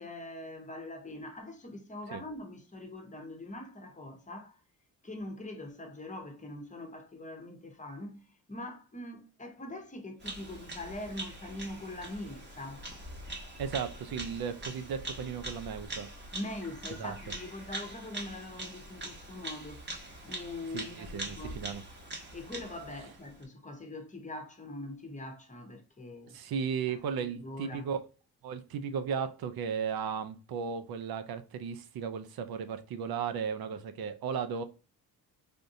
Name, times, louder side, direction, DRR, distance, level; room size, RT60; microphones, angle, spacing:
voice 1, 0.0-4.6 5.0-12.9 16.3-19.9 20.2-21.7 22.3-26.3 26.9-27.0 27.3-27.9, left 1 dB, 20° left, 0.9 m, -43 dB
Bird vocalization bird call bird song, 10.2-23.4, right 1 dB, 30° right, 1.1 m, -43 dB
voice 2, 13.6-16.1 17.0-17.1 20.7-21.8 26.3-28.0 28.4-34.6, right 7 dB, 70° right, 0.6 m, -35 dB
3.5 x 2.6 x 2.6 m
cardioid pair, 100°, 37 cm